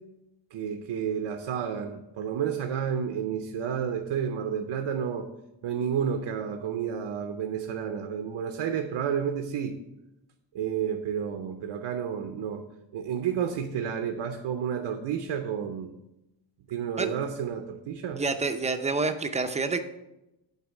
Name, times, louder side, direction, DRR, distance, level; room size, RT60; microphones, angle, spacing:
voice 1, 0.5-5.3 5.6-9.8 10.5-12.6 12.9-16.0 16.7-18.2, right 8 dB, 90° right, 5 dB, 0.8 m, -31 dB
voice 2, 18.1-19.8, right 3 dB, 15° right, 8 dB, 0.5 m, -28 dB
8.4 x 4.1 x 7.0 m, 0.92 s
wide cardioid pair, 155°, 47 cm